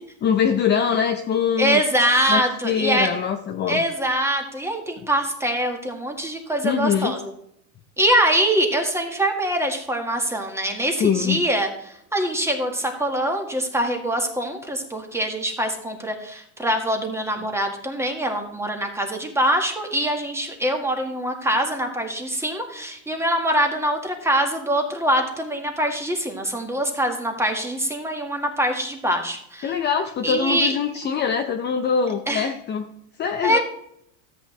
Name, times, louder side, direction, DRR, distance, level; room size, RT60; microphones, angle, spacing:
voice 1, 0.2-1.8 2.3-3.8 6.6-7.2 11.0-11.4 29.6-32.9 33.2-33.6, left 7 dB, 25° left, 5 dB, 0.7 m, -23 dB
voice 2, 1.6-3.1 3.7-7.3 8.0-29.7 30.2-30.7 32.3-32.5 33.4-33.6, right 1 dB, 5° right, 3 dB, 1.8 m, -24 dB
13.5 x 8.2 x 3.3 m, 0.74 s
supercardioid pair, 115°, 42 cm